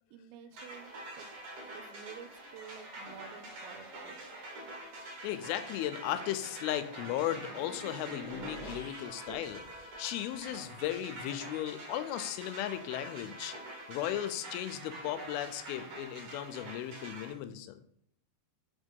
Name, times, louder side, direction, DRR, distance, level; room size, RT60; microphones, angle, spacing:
voice 1, 0.1-1.3 1.7-4.2, right 8 dB, 85° right, 9 dB, 2.5 m, -50 dB
sound 1, 0.5-10.8, equal, 60° left, 0.8 m, -51 dB
sound 2, 0.6-17.3, right 2 dB, 55° right, 1.7 m, -46 dB
voice 2, 5.2-13.6 13.9-17.8, left 12 dB, 85° left, 10 dB, 2.4 m, -36 dB
5.7 x 3.6 x 5.3 m, 0.64 s
omnidirectional pair, 4.4 m